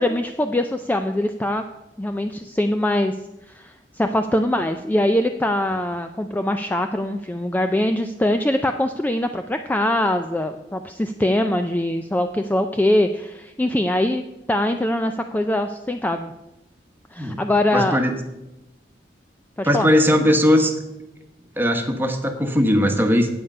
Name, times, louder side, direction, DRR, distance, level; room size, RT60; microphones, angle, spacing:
voice 1, 0.0-1.6 2.0-3.2 3.5-16.3 17.1-18.0 19.6-19.9, left 1 dB, 10° left, 7 dB, 0.4 m, -22 dB
voice 2, 17.7-18.1 19.6-20.7 21.6-23.3, equal, 10° right, 4 dB, 1.2 m, -19 dB
8.8 x 8.4 x 5.4 m, 0.95 s
head